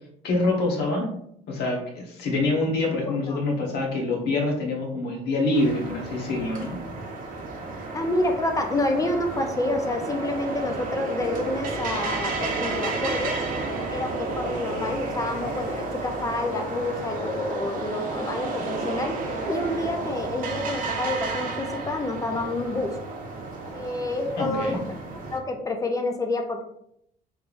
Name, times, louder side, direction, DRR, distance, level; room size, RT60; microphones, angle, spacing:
voice 1, 0.2-1.1 1.5-6.8 24.4-24.8, left 2 dB, 75° left, 0 dB, 1.1 m, -25 dB
voice 2, 3.1-3.4 7.9-13.4 13.9-19.1 19.5-22.9 23.7-24.8 25.3-26.6, left 2 dB, 20° left, 3 dB, 0.6 m, -28 dB
sound 1, 5.5-25.4, right 3 dB, 55° right, 0.7 m, -32 dB
3.4 x 3.2 x 2.5 m, 0.72 s
cardioid pair, 110°, 17 cm